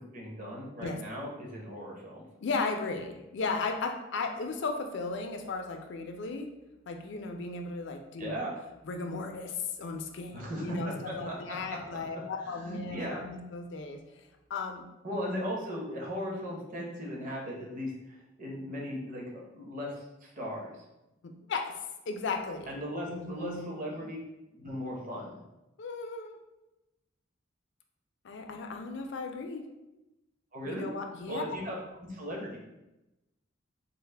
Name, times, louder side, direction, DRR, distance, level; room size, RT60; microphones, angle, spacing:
voice 1, 0.1-2.2 8.2-8.6 10.3-12.0 12.4-13.2 15.0-20.7 22.7-24.2 24.5-25.3 30.5-30.9 31.3-31.8 32.1-32.6, equal, 45° right, -2 dB, 0.8 m, -37 dB
voice 2, 2.4-6.5 6.9-8.4 8.9-14.0 14.5-14.8 21.2-21.7 22.1-22.8 23.1-23.7 25.8-26.4 28.2-29.7 30.7-31.4, left 4 dB, 65° left, 4 dB, 0.4 m, -35 dB
3.9 x 2.0 x 3.3 m, 0.96 s
head